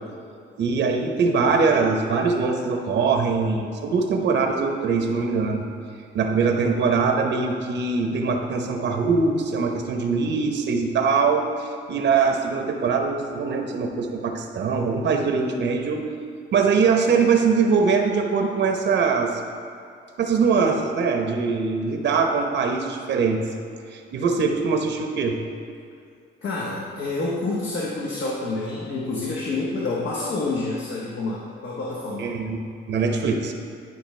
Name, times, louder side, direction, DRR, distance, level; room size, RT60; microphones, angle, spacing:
voice 1, 0.6-5.6 6.1-16.1 16.5-19.4 20.2-23.4 23.9-25.4 32.2-32.6 32.9-33.5, right 5 dB, 65° right, 4 dB, 0.9 m, -22 dB
voice 2, 26.4-32.3, left 3 dB, 65° left, -5 dB, 1.2 m, -28 dB
12.0 x 5.0 x 3.2 m, 2.4 s
cardioid pair, 90°, 20 cm